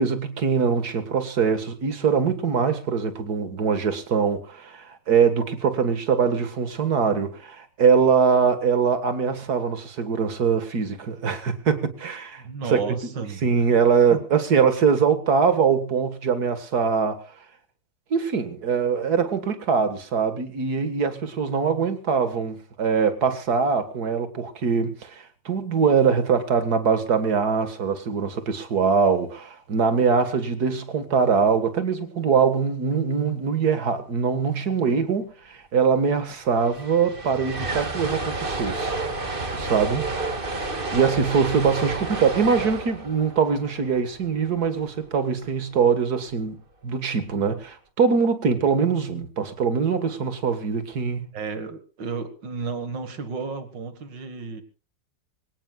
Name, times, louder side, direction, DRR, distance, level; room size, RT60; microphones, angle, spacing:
voice 1, 0.0-13.0 13.4-17.2 18.1-38.9 39.5-40.1 40.6-46.6 46.8-51.3, right 6 dB, 60° right, 2.2 m, -23 dB
voice 2, 12.4-13.7 14.1-14.4 51.3-54.6, right 5 dB, 75° right, 2.5 m, -33 dB
sound 1, 36.4-44.6, right 2 dB, 30° right, 2.0 m, -30 dB
25.0 x 17.5 x 2.4 m
omnidirectional pair, 2.0 m